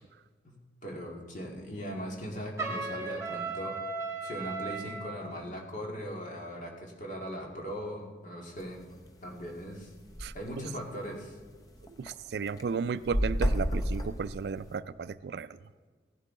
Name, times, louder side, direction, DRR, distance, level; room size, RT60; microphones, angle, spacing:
voice 1, 0.4-3.8 4.2-8.8 9.2-9.9 10.3-11.4, equal, 45° left, 0 dB, 1.9 m, -39 dB
Trumpet, 2.6-5.1, right 4 dB, 15° right, 1.6 m, -36 dB
sound 1, 8.6-8.8 9.3-9.4 9.6-9.7 9.9-10.3 10.9-11.0 11.4-12.1 12.5-14.7, equal, 20° left, 0.8 m, -30 dB
voice 2, 12.0-15.5, right 5 dB, 65° right, 15 dB, 0.3 m, -34 dB
16.5 x 11.5 x 3.7 m, 1.5 s
head